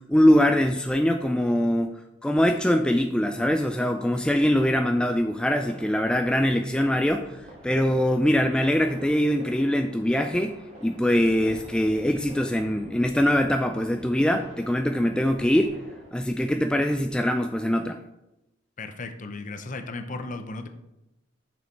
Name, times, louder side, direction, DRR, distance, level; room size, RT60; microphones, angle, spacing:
voice 1, 0.0-1.9 2.2-7.4 7.6-15.7 16.1-18.0, equal, 5° left, 5 dB, 0.3 m, -23 dB
sound 1, 3.3-16.1, equal, 35° right, 2.1 m, -47 dB
voice 2, 18.8-20.7, left 3 dB, 40° left, 7 dB, 0.7 m, -35 dB
7.0 x 6.3 x 4.5 m, 0.91 s
head